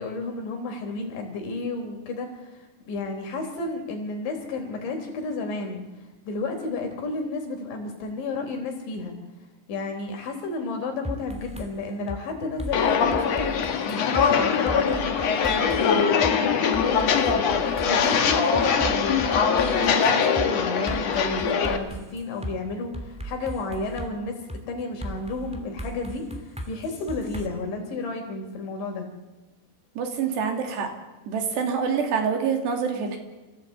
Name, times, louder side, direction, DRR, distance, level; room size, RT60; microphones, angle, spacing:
voice 1, 0.0-2.5 2.9-5.8 6.3-9.1 9.7-24.4 24.7-29.1, left 3 dB, 90° left, 3 dB, 6.0 m, -32 dB
sound 1, 11.0-11.7 12.1-12.2 12.6-14.3 14.7-15.8 16.2-16.3 16.7-20.0 20.4-20.5 20.9-22.5 22.9-24.1 24.5-24.6 25.0-27.5, right 1 dB, ahead, 1.4 m, -36 dB
Walk footsteps, 12.7-21.8, left 6 dB, 55° left, 2.0 m, -22 dB
voice 2, 30.0-30.9 31.3-33.2, right 6 dB, 70° right, 4 dB, 4.7 m, -26 dB
28.0 x 15.5 x 8.4 m, 1.2 s
omnidirectional pair, 5.1 m